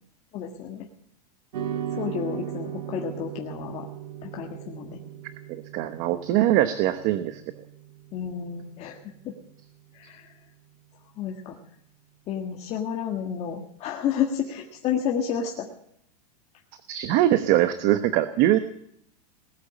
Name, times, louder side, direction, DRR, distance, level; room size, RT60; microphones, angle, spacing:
voice 1, 0.3-0.9 1.9-3.9 4.2-5.0 8.1-9.3 9.9-10.3 11.2-11.6 12.3-15.7, left 8 dB, 30° left, 0 dB, 1.7 m, -31 dB
sound 1, 1.5-10.1, right 10 dB, 80° right, 1.5 m, -38 dB
voice 2, 5.5-7.4 16.9-18.6, right 13 dB, 40° right, 11 dB, 1.0 m, -22 dB
19.5 x 8.3 x 8.6 m, 0.69 s
supercardioid pair, 150°, 21 cm